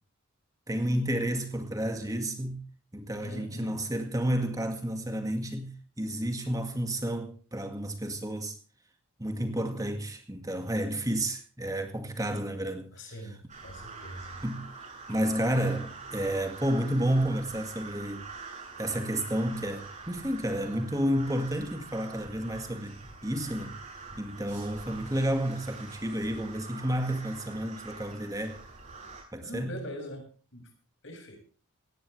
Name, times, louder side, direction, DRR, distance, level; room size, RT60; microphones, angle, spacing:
voice 1, 0.7-2.6 2.9-8.6 9.2-13.4 14.4-14.7 15.1-18.2 18.8-23.8 24.2-28.6 29.3-29.8, right 1 dB, 15° right, 2.0 m, -31 dB
voice 2, 3.2-3.7 12.2-12.4 12.9-14.4 29.4-30.7 31.0-31.4, equal, 55° left, 6.7 m, -42 dB
sound 1, 13.5-29.2, right 4 dB, 30° right, 8.0 m, -45 dB
18.5 x 17.5 x 3.3 m
head